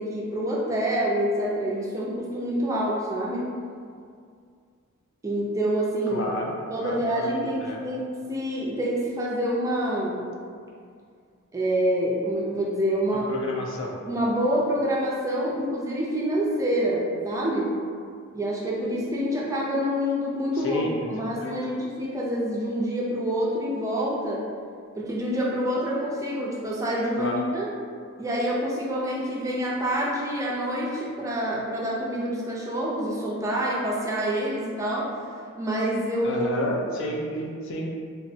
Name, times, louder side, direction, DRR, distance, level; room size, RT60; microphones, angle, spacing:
voice 1, 0.0-3.5 5.2-6.3 6.7-10.3 11.5-13.3 14.1-17.7 18.3-24.4 24.9-27.7 28.2-35.1 35.6-36.5 36.8-36.9, equal, 15° right, -5 dB, 0.3 m, -27 dB
voice 2, 6.1-7.3 7.6-7.8 13.3-14.0 20.6-21.6 27.2-27.4 36.2-37.9, left 1 dB, 60° left, -1 dB, 0.4 m, -31 dB
3.4 x 2.0 x 2.6 m, 2.2 s
head